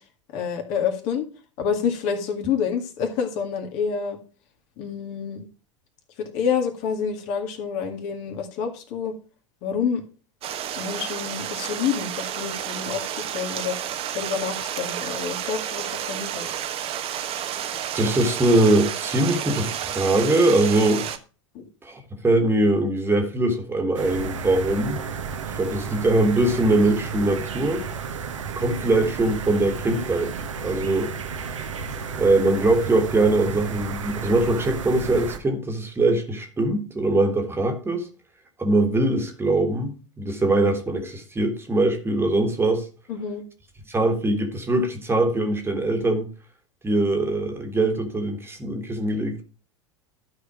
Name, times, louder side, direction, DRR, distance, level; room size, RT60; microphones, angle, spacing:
voice 1, 0.3-1.3 1.6-4.2 4.8-5.5 6.2-9.1 9.6-10.0 10.8-16.5 21.5-21.7 43.1-43.4, left 7 dB, 50° left, 2.0 m, -28 dB
Stream, 10.4-21.2, right 10 dB, 35° right, 1.1 m, -31 dB
voice 2, 17.9-21.1 21.8-25.0 25.5-27.9 28.5-30.3 30.6-31.1 32.2-38.1 38.6-42.9 43.9-46.3 46.8-49.4, right 2 dB, 15° right, 1.8 m, -22 dB
sound 1, 23.9-35.4, right 5 dB, 75° right, 1.2 m, -32 dB
12.0 x 4.9 x 4.9 m
figure-of-eight pair, 85°, 16 cm